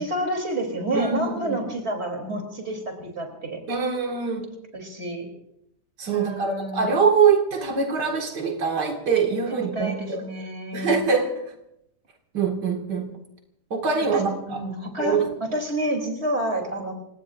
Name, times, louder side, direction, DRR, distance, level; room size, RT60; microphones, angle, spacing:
voice 1, 0.0-3.6 4.7-5.3 6.1-7.0 9.7-11.0 14.1-16.9, right 1 dB, 40° right, 3 dB, 3.6 m, -29 dB
voice 2, 0.9-1.6 3.7-4.5 6.0-10.2 10.7-11.4 12.3-13.1 13.7-14.6 15.0-15.3, right 5 dB, 90° right, 2 dB, 2.6 m, -23 dB
29.0 x 17.5 x 2.6 m, 0.76 s
omnidirectional pair, 1.8 m